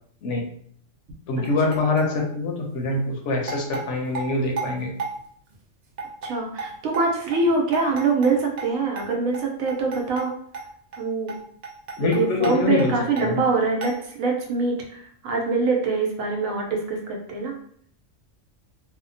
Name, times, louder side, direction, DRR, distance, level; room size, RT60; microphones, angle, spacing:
voice 1, 1.3-4.9 12.0-12.9 13.2-13.4, left 3 dB, 70° left, 0 dB, 0.8 m, -24 dB
sound 1, 1.4-2.2 2.8-2.9 3.5-5.2 5.5-5.6 6.0-6.3 6.6-8.3 8.6-8.7 9.0-9.1 9.3-9.4 9.7-10.3 10.5-10.7 10.9-11.0 11.3-11.4 11.6-12.9 13.2-13.3 13.8-13.9, right 4 dB, 60° right, 0.4 m, -33 dB
voice 2, 6.2-10.3 11.0-11.3 12.0-17.5, right 3 dB, 85° right, 1 dB, 1.0 m, -24 dB
2.7 x 2.1 x 2.5 m, 0.63 s
omnidirectional pair, 1.4 m